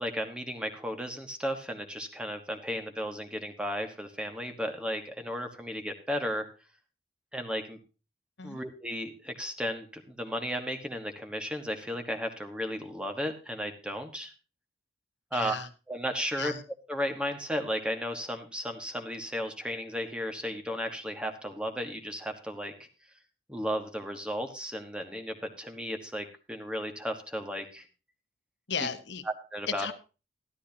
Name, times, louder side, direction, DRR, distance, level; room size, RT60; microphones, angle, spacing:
voice 1, 0.0-6.5 7.3-7.8 8.4-14.3 15.3-15.6 15.9-16.5 16.9-22.7 23.5-27.9 28.8-28.9 29.2-29.9, equal, 5° right, 5 dB, 1.3 m, -34 dB
voice 2, 15.3-15.7 16.4-16.6 28.7-29.2 29.7-29.9, left 6 dB, 60° left, 10 dB, 1.2 m, -34 dB
14.0 x 12.5 x 2.8 m, 0.32 s
head